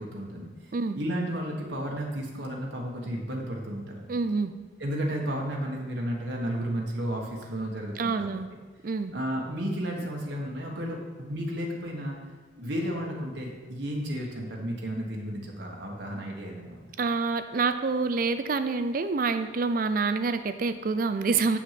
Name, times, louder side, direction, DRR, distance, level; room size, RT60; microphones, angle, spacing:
voice 1, 0.0-4.0 4.8-8.4 9.1-12.1 12.6-16.9, equal, 60° right, -1 dB, 1.3 m, -33 dB
voice 2, 4.1-4.5 8.0-8.5 8.8-9.1 17.0-21.6, right 4 dB, 45° right, 10 dB, 0.4 m, -27 dB
8.7 x 6.1 x 5.8 m, 1.3 s
head